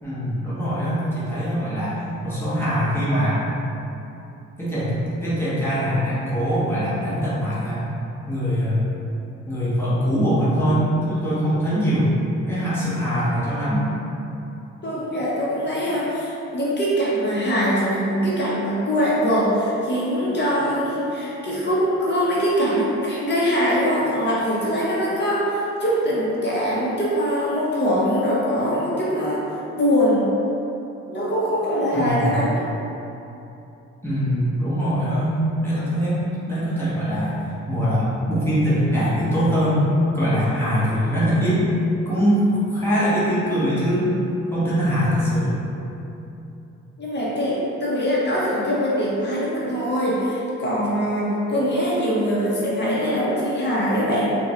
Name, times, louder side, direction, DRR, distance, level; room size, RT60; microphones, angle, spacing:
voice 1, 0.0-3.5 4.6-5.0 5.2-7.9 8.3-8.8 9.5-12.1 12.5-13.9 31.9-32.4 34.0-37.4 37.7-39.9 40.1-41.7 42.1-44.1 44.5-45.6, equal, 10° left, -11 dB, 1.0 m, -22 dB
voice 2, 14.8-29.4 29.8-30.3 31.1-32.6 47.0-54.3, equal, 35° left, -7 dB, 0.7 m, -22 dB
3.7 x 2.2 x 2.9 m, 2.9 s
cardioid pair, 90°, 30 cm